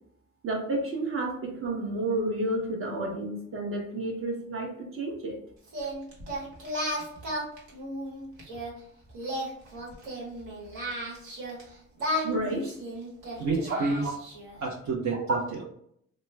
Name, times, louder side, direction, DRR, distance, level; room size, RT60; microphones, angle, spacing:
voice 1, 0.4-5.4 12.2-12.7, right 2 dB, 45° right, -1 dB, 1.1 m, -31 dB
Singing, 5.7-8.7 9.1-11.6 12.0-14.6, equal, 80° right, 1.2 m, -34 dB
voice 2, 13.4-14.1 14.6-15.6, right 3 dB, 65° right, -4 dB, 0.8 m, -29 dB
3.0 x 2.1 x 3.3 m, 0.69 s
cardioid pair, 90°, 30 cm